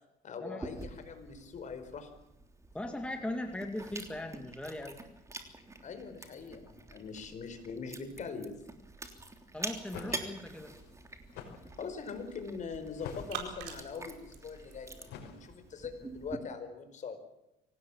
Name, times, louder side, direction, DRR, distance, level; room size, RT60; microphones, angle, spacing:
voice 1, 0.2-2.1 5.8-8.6 11.8-17.2, left 5 dB, 45° left, 8 dB, 4.9 m, -42 dB
Chewing mastication, 0.6-16.4, right 2 dB, 15° right, 3.4 m, -47 dB
voice 2, 2.7-5.0 9.5-10.7, left 1 dB, 5° left, 4 dB, 2.3 m, -39 dB
sound 1, 9.5-15.0, right 7 dB, 85° right, 4.9 m, -49 dB
sound 2, 9.8-15.9, left 7 dB, 80° left, 5.3 m, -49 dB
25.0 x 18.5 x 7.4 m, 0.88 s
cardioid pair, 110°, 17 cm